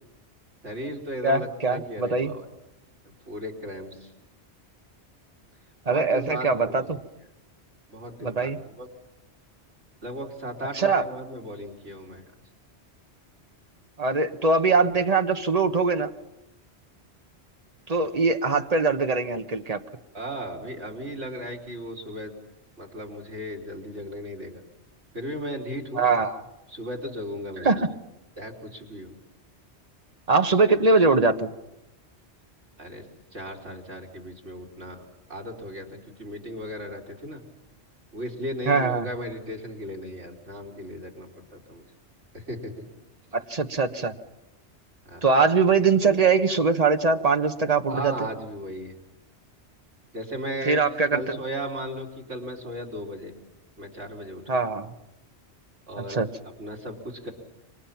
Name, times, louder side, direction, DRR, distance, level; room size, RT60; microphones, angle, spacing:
voice 1, 0.6-2.4 3.3-4.1 5.9-7.0 7.9-8.9 10.0-12.3 20.1-22.3 22.8-24.6 25.1-26.0 26.7-27.9 28.4-29.1 32.8-33.1 33.3-35.0 35.3-37.4 38.1-41.9 42.3-42.8 45.1-45.3 47.9-48.9 50.1-50.8 51.1-53.3 53.8-54.6 55.9-57.3, equal, 80° right, -1 dB, 4.0 m, -36 dB
voice 2, 1.2-2.3 5.9-7.0 8.2-8.6 10.7-11.0 14.0-16.1 17.9-19.8 25.9-26.4 27.6-27.9 30.3-31.5 38.6-39.1 43.3-44.1 45.2-48.1 50.6-51.4 54.5-54.9 56.0-56.3, right 4 dB, 35° right, 6 dB, 1.3 m, -22 dB
28.5 x 25.0 x 5.9 m, 0.92 s
omnidirectional pair, 1.1 m